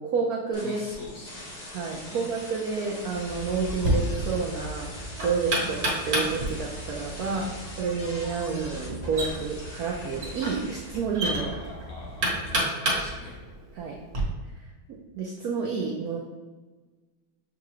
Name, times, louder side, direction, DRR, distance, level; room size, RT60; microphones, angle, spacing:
voice 1, 0.0-0.8 1.7-7.5 7.8-11.5 13.8-14.0 14.9-16.2, right 5 dB, 85° right, -1 dB, 0.8 m, -30 dB
sound 1, 0.5-11.0, left 1 dB, 65° left, 0.4 m, -42 dB
voice 2, 0.6-1.6 2.0-2.3 5.6-5.8 7.2-7.6 11.4-13.4, left 1 dB, 85° left, -3 dB, 2.0 m, -44 dB
sound 2, 3.1-12.7, equal, 70° right, 1.3 m, -43 dB
Knock, 3.6-14.2, right 1 dB, 55° right, 1.5 m, -31 dB
6.5 x 2.4 x 3.0 m, 1.3 s
omnidirectional pair, 2.2 m